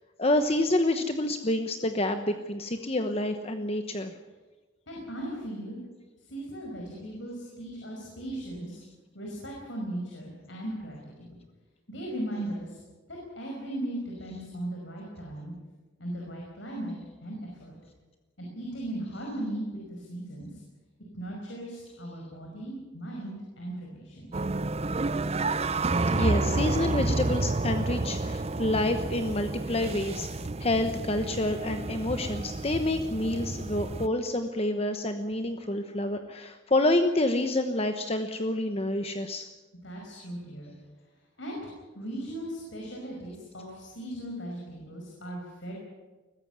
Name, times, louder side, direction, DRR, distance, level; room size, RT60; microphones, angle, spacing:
voice 1, 0.2-4.2 26.1-30.3 30.6-39.5, left 1 dB, 30° left, 7 dB, 1.1 m, -28 dB
voice 2, 4.9-5.8 6.3-8.8 9.1-11.3 11.9-12.8 13.1-15.5 16.0-16.9 17.2-17.8 18.4-20.6 21.1-24.3 39.8-40.7 41.4-45.7, right 1 dB, 75° left, -1 dB, 5.5 m, -37 dB
sound 1, 24.3-34.1, right 2 dB, 35° right, 0.6 m, -30 dB
21.0 x 15.0 x 9.5 m, 1.2 s
head